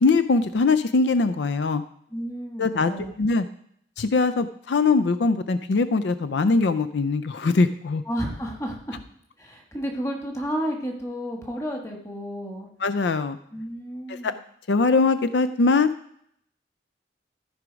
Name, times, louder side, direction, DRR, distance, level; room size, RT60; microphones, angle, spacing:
voice 1, 0.0-1.8 2.6-2.9 3.2-3.4 4.0-8.0 12.8-13.4 14.2-14.3 14.7-15.9, left 3 dB, 75° left, 12 dB, 0.5 m, -21 dB
voice 2, 2.1-3.1 8.0-9.0 9.4-12.7 13.5-14.4, equal, 15° left, 1 dB, 1.4 m, -32 dB
14.0 x 4.8 x 5.1 m, 0.69 s
head